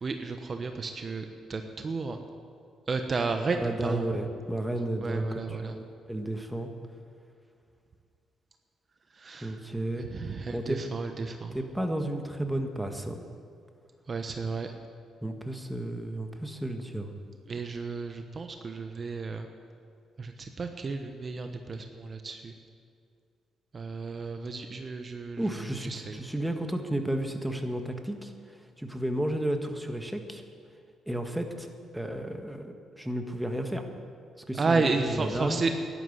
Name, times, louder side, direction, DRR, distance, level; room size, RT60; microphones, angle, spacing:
voice 1, 0.0-2.2 2.9-4.0 5.0-5.7 9.2-9.6 10.0-11.6 14.1-14.7 17.5-19.4 20.2-22.5 23.7-26.2 34.6-35.7, right 4 dB, 40° right, 6 dB, 1.1 m, -32 dB
voice 2, 3.6-6.7 9.4-10.1 10.5-10.8 11.5-13.2 15.2-17.1 25.4-28.3 28.8-30.4 31.1-33.8 34.5-35.6, right 1 dB, 5° right, 5 dB, 1.7 m, -32 dB
12.0 x 11.5 x 8.3 m, 2.3 s
supercardioid pair, 65°, 0 cm